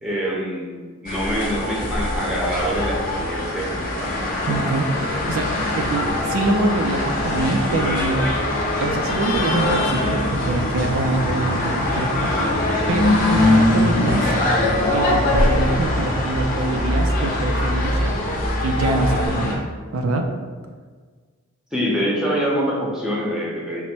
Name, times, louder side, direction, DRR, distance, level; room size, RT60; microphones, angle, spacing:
voice 1, 0.0-4.1 21.7-23.8, equal, ahead, -5 dB, 0.7 m, -25 dB
sound 1, 1.1-19.5, left 1 dB, 40° left, 0.7 m, -22 dB
voice 2, 4.4-8.3 8.8-12.3 12.9-14.3 14.9-18.1 18.6-19.6 19.9-20.3, right 2 dB, 70° right, 4 dB, 0.4 m, -24 dB
4.3 x 2.1 x 4.3 m, 1.5 s
head